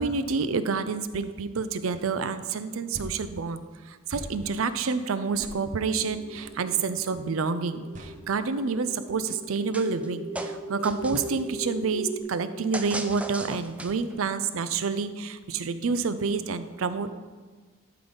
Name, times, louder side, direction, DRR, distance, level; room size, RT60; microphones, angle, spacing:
voice 1, 0.0-3.6 3.9-17.1, right 4 dB, 80° right, 12 dB, 0.5 m, -28 dB
sound 1, 1.9-2.1 2.9-3.2 4.1-4.3 5.4-5.6 6.3-6.5 7.9-8.2, right 1 dB, 40° right, 0.8 m, -41 dB
sound 2, 5.3-12.2, right 1 dB, 65° right, 2.4 m, -40 dB
sound 3, 9.7-10.1 10.3-11.4 12.7-14.1, right 2 dB, 5° right, 0.4 m, -37 dB
11.5 x 3.9 x 5.2 m, 1.4 s
head